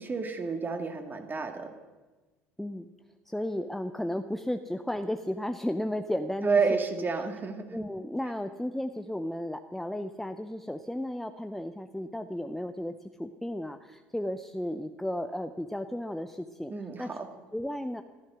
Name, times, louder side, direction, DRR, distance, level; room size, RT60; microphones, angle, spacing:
voice 1, 0.0-1.7 6.4-7.8 16.7-17.3, right 4 dB, 25° right, 5 dB, 2.2 m, -30 dB
voice 2, 2.6-2.9 3.3-6.8 7.7-16.7 17.0-17.1 17.5-18.0, left 1 dB, 5° left, 8 dB, 0.8 m, -34 dB
14.5 x 13.5 x 6.3 m, 1.3 s
figure-of-eight pair, 65°, 7 cm